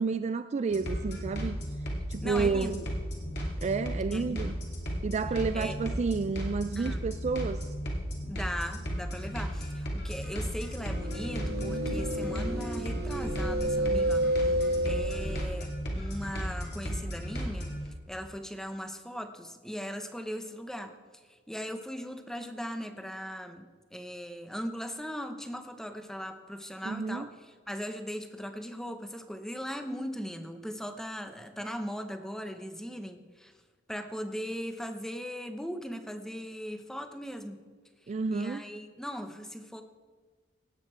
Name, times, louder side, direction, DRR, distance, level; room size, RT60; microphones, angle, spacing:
voice 1, 0.0-1.6 2.1-2.8 3.6-4.5 5.0-7.7 26.9-27.3 38.1-38.6, right 4 dB, 35° right, 11 dB, 0.3 m, -30 dB
sound 1, 0.7-17.9, equal, 60° left, 2.4 m, -35 dB
voice 2, 2.2-2.9 4.1-4.6 5.5-5.8 6.8-7.1 8.3-20.9 21.3-33.5 33.9-37.6 38.3-39.8, equal, 5° left, 8 dB, 0.8 m, -39 dB
sound 2, 10.8-15.5, right 1 dB, 60° right, 1.2 m, -30 dB
17.5 x 8.1 x 4.4 m, 1.4 s
head